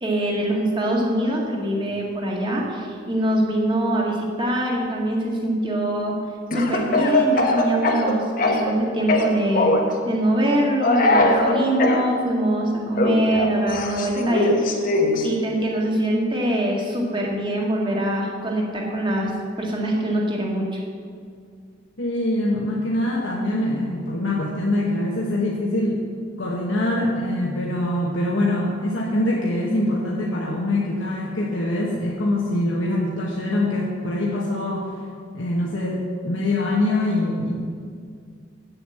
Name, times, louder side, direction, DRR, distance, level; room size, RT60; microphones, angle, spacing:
voice 1, 0.0-6.2 6.5-9.7 10.1-14.5 15.2-19.3 19.6-20.8, right 1 dB, 25° right, -2 dB, 1.8 m, -23 dB
Speech / Cough, 6.5-8.8 9.1-9.9 10.8-12.0 12.9-15.3, left 2 dB, 45° left, 1.1 m, -20 dB
voice 2, 22.0-26.0 26.4-34.9 35.3-37.5, left 1 dB, 75° left, -4 dB, 1.3 m, -24 dB
8.0 x 7.8 x 7.7 m, 2.2 s
head